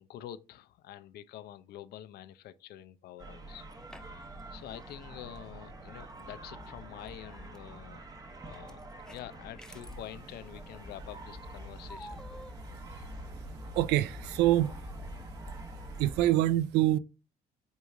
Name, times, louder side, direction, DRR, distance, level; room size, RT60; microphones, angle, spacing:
voice 1, 0.0-3.7 4.5-8.0 8.4-12.2 12.9-13.1, left 12 dB, 70° left, 0.7 m, -47 dB
sound 1, 3.2-16.3, right 1 dB, 20° right, 1.4 m, -45 dB
sound 2, 3.7-4.4 4.7-4.8 6.2-6.3 7.1-7.6 8.4-10.1 11.9-12.5, equal, 5° left, 0.6 m, -50 dB
voice 2, 13.7-14.8 15.2-15.3 15.9-17.0, right 14 dB, 80° right, 0.5 m, -26 dB
8.2 x 3.1 x 3.7 m
cardioid pair, 110°, 17 cm